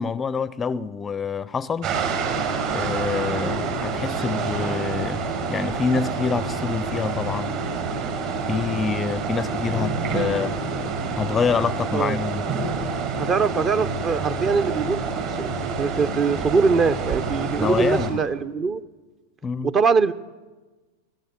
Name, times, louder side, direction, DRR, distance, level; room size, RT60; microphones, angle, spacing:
voice 1, 0.0-2.0 2.7-7.6 8.5-10.6 11.2-12.4 17.6-18.2 19.4-19.7, left 5 dB, 20° left, 0.5 m, -26 dB
sound 1, 1.8-18.1, right 4 dB, 55° right, 5.3 m, -27 dB
voice 2, 13.2-18.8 19.6-20.1, right 5 dB, 30° right, 0.8 m, -22 dB
23.5 x 16.0 x 7.8 m
figure-of-eight pair, 95°, 0 cm